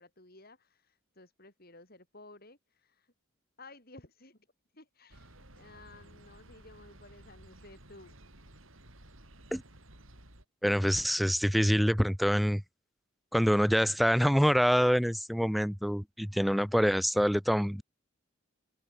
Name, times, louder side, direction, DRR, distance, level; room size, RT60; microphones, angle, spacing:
voice 1, 0.0-3.1 3.6-4.5 4.7-8.2, left 2 dB, 45° left, 7.5 m, -55 dB
sound 1, 5.1-10.4, right 1 dB, 70° right, 7.1 m, -55 dB
voice 2, 10.6-12.6 13.3-17.8, equal, ahead, 0.3 m, -26 dB
open air
head